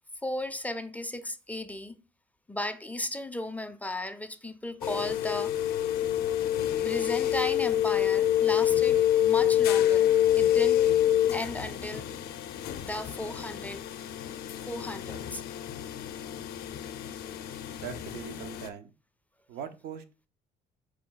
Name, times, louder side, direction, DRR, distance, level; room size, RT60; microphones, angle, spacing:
voice 1, 0.2-1.9 2.5-5.8 6.8-10.1 10.4-10.8 11.3-12.1 12.8-13.8 14.7-15.4, left 1 dB, 10° left, 0.4 m, -35 dB
sound 1, 4.8-18.7, left 11 dB, 70° left, 0.5 m, -27 dB
voice 2, 17.7-18.9 19.5-20.0, right 9 dB, 75° right, 0.5 m, -41 dB
4.6 x 2.2 x 3.8 m
cardioid pair, 110°, 17 cm